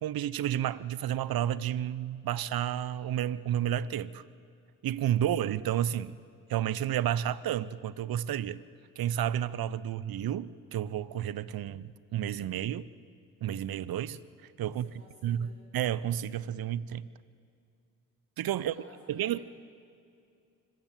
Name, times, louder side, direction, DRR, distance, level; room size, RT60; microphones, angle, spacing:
voice 1, 0.0-4.2 4.8-6.2 6.5-8.6 9.0-12.9 13.4-14.2 14.6-14.9 15.2-17.1 18.4-18.7 19.1-19.4, right 11 dB, 55° right, 19 dB, 0.9 m, -31 dB
voice 2, 14.7-15.6 18.6-19.4, equal, 30° right, 0 dB, 7.2 m, -56 dB
25.5 x 15.5 x 7.4 m, 2.5 s
hypercardioid pair, 45°, 44 cm